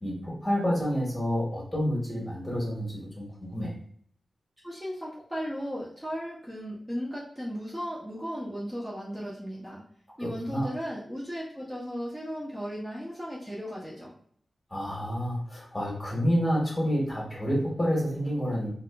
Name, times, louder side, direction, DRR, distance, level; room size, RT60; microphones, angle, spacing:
voice 1, 0.0-3.7 10.2-10.7 14.7-18.7, equal, 20° left, -4 dB, 1.3 m, -29 dB
voice 2, 4.6-9.8 10.2-14.1, equal, 10° right, -5 dB, 0.6 m, -36 dB
4.1 x 2.3 x 2.2 m, 0.63 s
wide cardioid pair, 90°, 0 cm